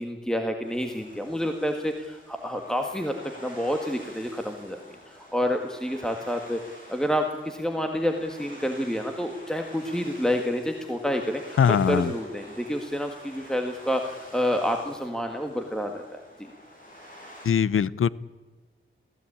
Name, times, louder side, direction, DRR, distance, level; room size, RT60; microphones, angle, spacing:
voice 1, 0.0-3.1 3.4-6.6 6.9-16.2, equal, 5° left, 4 dB, 1.6 m, -28 dB
sound 1, 0.6-17.5, equal, 40° left, 7.3 m, -48 dB
voice 2, 11.6-12.1 17.4-18.1, left 7 dB, 80° left, 19 dB, 0.7 m, -21 dB
23.0 x 16.0 x 8.7 m, 1.4 s
wide cardioid pair, 120°, 21 cm